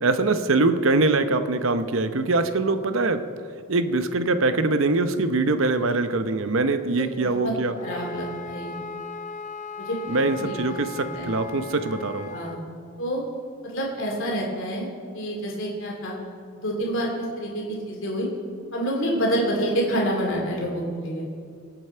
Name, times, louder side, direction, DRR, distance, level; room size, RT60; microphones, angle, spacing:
voice 1, 0.0-3.2 3.7-7.7 10.1-12.3, right 3 dB, 70° right, 9 dB, 0.8 m, -23 dB
voice 2, 7.0-8.7 9.8-10.6 11.1-11.3 12.3-12.6 13.0-13.2 13.6-14.9 15.1-16.2 16.5-18.3 18.7-21.3, equal, 65° left, -2 dB, 2.7 m, -28 dB
Wind instrument woodwind instrument, 7.8-12.6, left 4 dB, 35° left, 0.6 m, -37 dB
23.5 x 8.5 x 4.5 m, 2.2 s
head